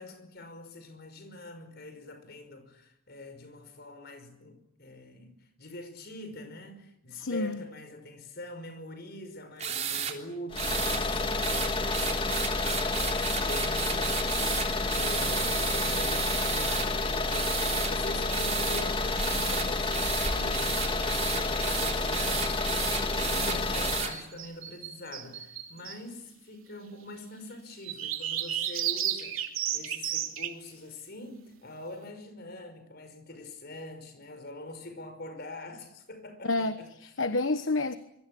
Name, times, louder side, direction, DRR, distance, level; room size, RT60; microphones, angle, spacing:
voice 1, 0.0-5.3 5.6-14.7 15.0-22.8 23.2-36.9, left 2 dB, 50° left, 5.4 m, -44 dB
voice 2, 7.2-7.6 36.4-36.7 37.0-38.0, left 2 dB, 70° left, 1.2 m, -28 dB
sound 1, 9.6-10.1 10.6-11.0 11.4-16.9 17.3-17.9 18.3-18.8 19.2-24.1, right 8 dB, 35° right, 3.5 m, -33 dB
sound 2, 10.5-24.2, left 2 dB, 25° left, 2.2 m, -29 dB
sound 3, 24.1-26.0 27.8-30.5, right 11 dB, 85° right, 3.1 m, -33 dB
26.0 x 24.0 x 8.6 m
head